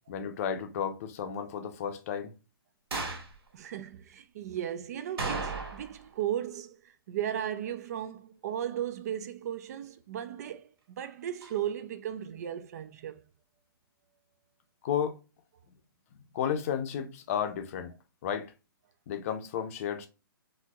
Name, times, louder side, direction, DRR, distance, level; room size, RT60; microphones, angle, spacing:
voice 1, 0.1-2.3 14.8-15.2 16.3-17.9 18.2-18.5 19.1-20.1, left 8 dB, 40° left, 0.6 m, -32 dB
sound 1, 2.9-3.3 5.2-6.0 6.3-6.4 11.4-11.5, right 3 dB, 80° right, 1.7 m, -34 dB
voice 2, 3.5-6.8 7.1-13.2, right 10 dB, 45° right, 0.4 m, -36 dB
4.2 x 2.7 x 2.2 m
hypercardioid pair, 150°, 13 cm